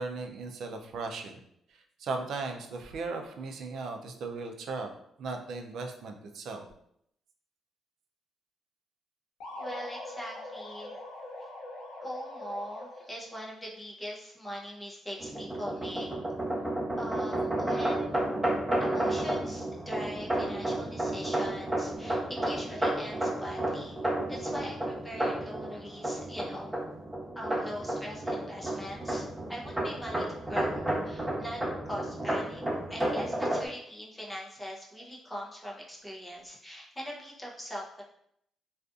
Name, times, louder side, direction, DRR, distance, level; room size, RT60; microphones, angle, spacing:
voice 1, 0.0-1.4 1.7-4.9 5.2-6.6, right 3 dB, 70° right, 4 dB, 0.4 m, -37 dB
sound 1, 9.4-13.3, left 1 dB, 85° left, 0.5 m, -42 dB
voice 2, 9.6-11.0 11.4-11.5 12.0-16.1 17.0-18.2 18.8-24.0 24.3-26.8 27.4-29.2 29.5-32.6 32.9-38.0, equal, 10° left, -3 dB, 0.6 m, -41 dB
sound 2, 15.2-33.7, right 1 dB, 10° right, 1.0 m, -32 dB
2.5 x 2.4 x 2.4 m, 0.72 s
cardioid pair, 90°, 0 cm